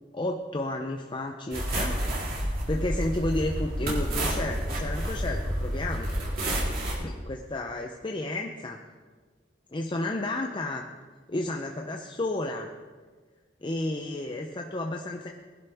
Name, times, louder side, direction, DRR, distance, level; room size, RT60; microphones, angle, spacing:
voice 1, 0.1-1.9 2.4-6.1 7.0-8.8 9.7-10.8 11.3-12.7 13.6-15.3, left 2 dB, 25° left, 2 dB, 0.7 m, -32 dB
sound 1, 1.5-6.9, right 1 dB, 55° right, 3.5 m, -29 dB
20.0 x 11.0 x 3.5 m, 1.5 s
head